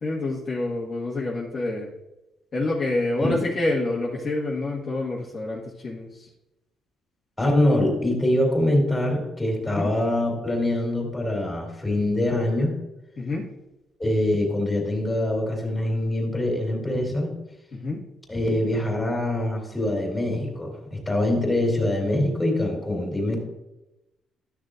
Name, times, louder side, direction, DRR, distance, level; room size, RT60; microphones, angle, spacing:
voice 1, 0.0-1.9 2.5-6.3 9.8-9.9 13.2-13.4 17.7-18.0, left 2 dB, 40° left, -5 dB, 1.7 m, -27 dB
voice 2, 7.4-12.8 14.0-17.3 18.3-23.4, left 1 dB, 10° left, 0 dB, 3.2 m, -24 dB
12.5 x 6.6 x 2.5 m, 0.96 s
cardioid pair, 115°, 0 cm